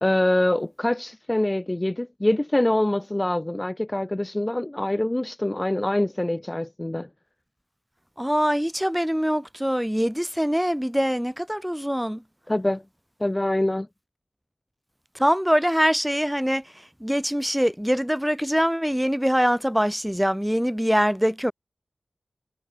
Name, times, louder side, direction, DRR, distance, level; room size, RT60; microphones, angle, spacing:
voice 1, 0.0-7.1 12.5-12.8 13.2-13.9, left 1 dB, 20° left, 0.5 m, -24 dB
voice 2, 8.2-12.2 15.2-16.6 17.0-21.5, equal, 5° right, 1.7 m, -23 dB
cardioid pair, 45°, 0 cm